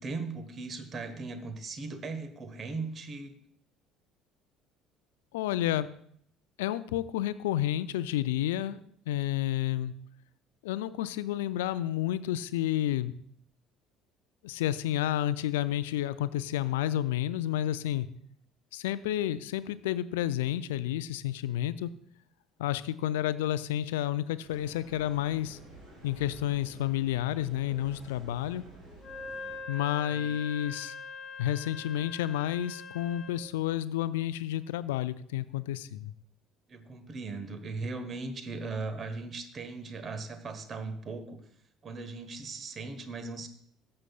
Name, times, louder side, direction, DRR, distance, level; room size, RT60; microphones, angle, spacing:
voice 1, 0.0-3.3 30.1-30.3 36.7-41.4 41.8-43.5, right 3 dB, 40° right, 9 dB, 1.1 m, -38 dB
voice 2, 5.3-5.9 6.6-8.8 9.1-9.9 10.6-13.1 14.4-18.1 18.7-21.9 22.6-25.6 26.0-28.6 29.7-30.9 31.4-36.1, left 12 dB, 70° left, 16 dB, 0.3 m, -30 dB
sound 1, 24.4-29.6, right 1 dB, 60° right, 4.2 m, -51 dB
Wind instrument woodwind instrument, 29.0-33.5, left 4 dB, 40° left, 1.2 m, -42 dB
14.0 x 7.6 x 2.3 m, 0.64 s
figure-of-eight pair, 55°, 0 cm